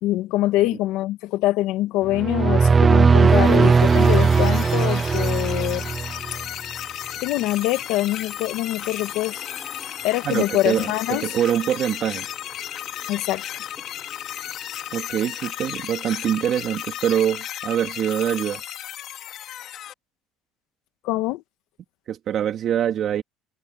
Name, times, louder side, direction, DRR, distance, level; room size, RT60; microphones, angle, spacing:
voice 1, 0.0-5.9 7.2-9.4 10.0-11.4 13.1-13.4 21.0-21.4, left 16 dB, 70° left, 1.4 m, -24 dB
sound 1, 2.1-6.4, right 5 dB, 20° right, 0.3 m, -17 dB
sound 2, 2.9-17.4, left 3 dB, 15° left, 7.2 m, -51 dB
sound 3, 3.3-19.9, left 11 dB, 50° left, 3.2 m, -34 dB
voice 2, 10.2-12.3 14.9-18.6 22.1-23.2, right 10 dB, 40° right, 3.2 m, -24 dB
cardioid pair, 150°, 0 cm